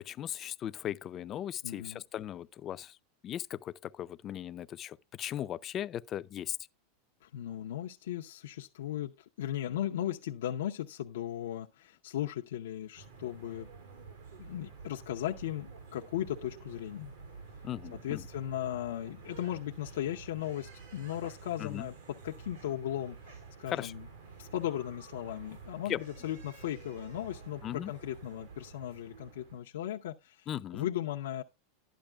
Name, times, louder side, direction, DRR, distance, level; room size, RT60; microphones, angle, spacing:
voice 1, 0.0-3.0 3.2-6.6 17.6-18.2 21.6-21.9 23.7-23.9 25.9-26.0 27.6-27.9 30.5-30.9, left 11 dB, 30° left, 0.5 m, -38 dB
voice 2, 1.6-2.0 7.2-13.7 14.4-17.1 17.9-21.9 22.2-24.0 24.4-31.4, left 12 dB, 85° left, 0.7 m, -37 dB
sound 1, 12.9-29.6, right 4 dB, 85° right, 5.8 m, -50 dB
12.0 x 10.0 x 2.3 m
supercardioid pair, 135°, 0 cm